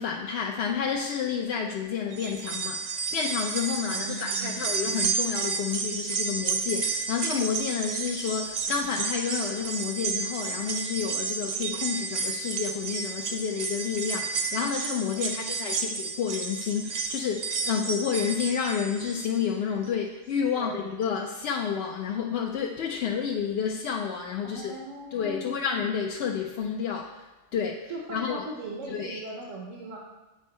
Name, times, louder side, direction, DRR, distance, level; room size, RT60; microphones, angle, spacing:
voice 1, 0.0-24.7 25.1-28.4 28.9-29.2, left 7 dB, 65° left, 1 dB, 0.7 m, -30 dB
sound 1, 2.1-19.4 19.8-19.9 21.0-21.1, right 5 dB, 55° right, 0.9 m, -31 dB
voice 2, 3.8-4.8 15.1-15.9 20.5-20.8 24.4-25.7 27.9-30.0, right 2 dB, 75° right, -2 dB, 1.2 m, -40 dB
8.5 x 4.4 x 4.2 m, 1.1 s
omnidirectional pair, 1.3 m